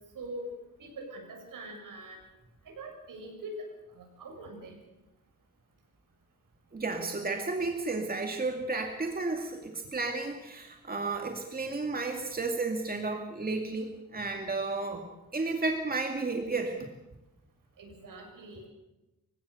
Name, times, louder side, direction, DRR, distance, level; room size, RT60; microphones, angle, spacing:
voice 1, 0.1-0.5 0.8-2.2 2.7-3.6 4.0-4.8 17.8-18.7, right 2 dB, 70° right, 3 dB, 7.1 m, -43 dB
voice 2, 6.7-15.0 15.3-16.8, right 3 dB, 25° right, 3 dB, 2.4 m, -32 dB
28.0 x 16.0 x 6.7 m, 0.98 s
cardioid pair, 110°, 34 cm